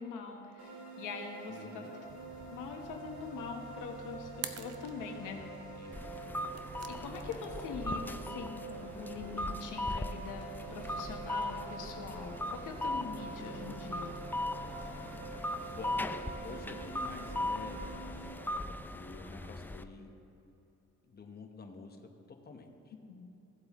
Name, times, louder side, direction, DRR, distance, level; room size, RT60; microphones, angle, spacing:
voice 1, 0.0-1.9 2.4-5.4 6.9-14.2 22.9-23.3, left 5 dB, 85° left, 3 dB, 1.1 m, -43 dB
sound 1, 0.6-18.3, right 4 dB, 75° right, 2.1 m, -47 dB
voice 2, 1.5-1.9 5.7-6.2 15.7-16.0 16.4-17.9 18.7-20.1 21.0-22.0 22.4-22.9, left 4 dB, 35° left, 3 dB, 1.1 m, -48 dB
sound 2, 2.0-16.2, right 6 dB, 55° right, 0.7 m, -50 dB
sound 3, 5.9-19.8, left 1 dB, 5° left, 0.3 m, -39 dB
16.5 x 7.8 x 3.1 m, 2.9 s
cardioid pair, 90°, 30 cm